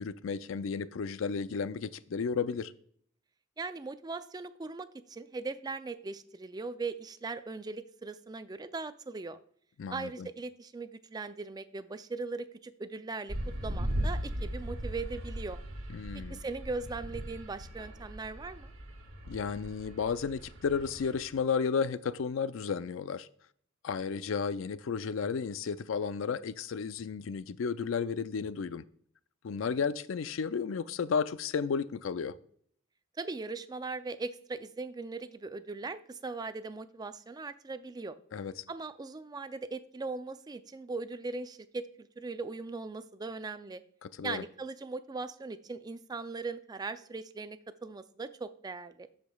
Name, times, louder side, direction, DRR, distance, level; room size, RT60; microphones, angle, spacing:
voice 1, 0.0-2.7 9.8-10.3 15.9-16.4 19.3-23.3 23.8-28.8 29.4-32.3 38.3-38.5 44.0-44.4, left 6 dB, 70° left, 0.4 m, -33 dB
voice 2, 3.6-9.4 9.9-13.4 13.6-15.6 16.3-18.7 33.2-38.1 38.7-43.8 44.2-49.1, right 3 dB, 20° right, 0.3 m, -39 dB
sound 1, 13.3-21.3, equal, 75° right, 1.4 m, -38 dB
13.5 x 5.1 x 2.3 m
head